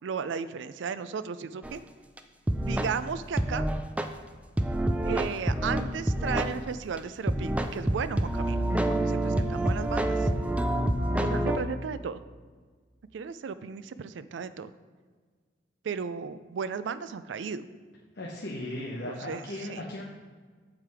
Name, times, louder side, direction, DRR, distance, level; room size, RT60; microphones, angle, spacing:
voice 1, 0.0-1.8 2.6-3.7 5.0-10.3 11.2-12.2 13.1-14.7 15.8-17.7 19.3-19.4 19.7-19.8, right 6 dB, 85° right, 13 dB, 0.4 m, -35 dB
sound 1, 1.6-1.7 2.2-2.3 2.5-3.0 3.4-4.1 4.6-6.5 7.0-7.1 7.3-11.6, right 1 dB, 5° right, 0.4 m, -27 dB
voice 2, 18.1-20.0, left 1 dB, 65° left, -1 dB, 0.8 m, -37 dB
7.5 x 4.9 x 4.7 m, 1.5 s
head